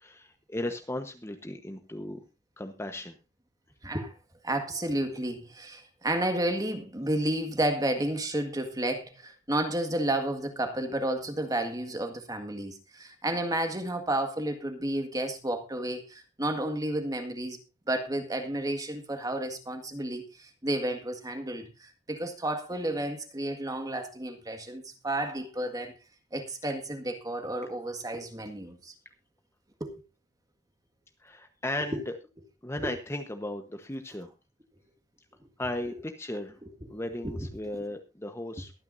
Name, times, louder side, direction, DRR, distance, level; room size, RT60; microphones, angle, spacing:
voice 1, 0.0-2.2 2.6-3.2 31.2-32.1 32.6-34.3 35.6-36.6 36.9-38.7, left 1 dB, 15° left, 1.1 m, -36 dB
voice 2, 3.8-4.1 4.4-17.6 17.9-25.9 26.3-28.9 29.8-30.0 31.9-32.0 32.8-32.9 35.9-36.0 36.9-37.5, right 1 dB, 20° right, 1.8 m, -31 dB
23.0 x 9.4 x 2.7 m
head